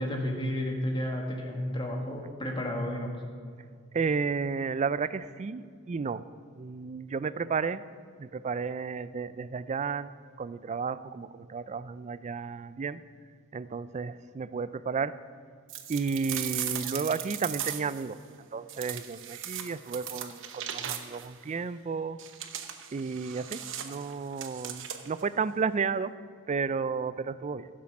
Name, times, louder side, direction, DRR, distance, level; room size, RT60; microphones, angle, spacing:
voice 1, 0.0-3.2, left 1 dB, 25° left, 1 dB, 1.7 m, -32 dB
voice 2, 3.9-6.2 6.5-7.8 8.2-10.1 10.4-13.0 13.5-15.1 15.9-22.2 22.9-26.1 26.5-27.7, right 5 dB, 35° right, 16 dB, 0.4 m, -32 dB
sound 1, 15.7-18.1 18.7-21.3 22.2-25.2, right 10 dB, 65° right, 0.9 m, -38 dB
15.5 x 7.5 x 5.9 m, 2.1 s
head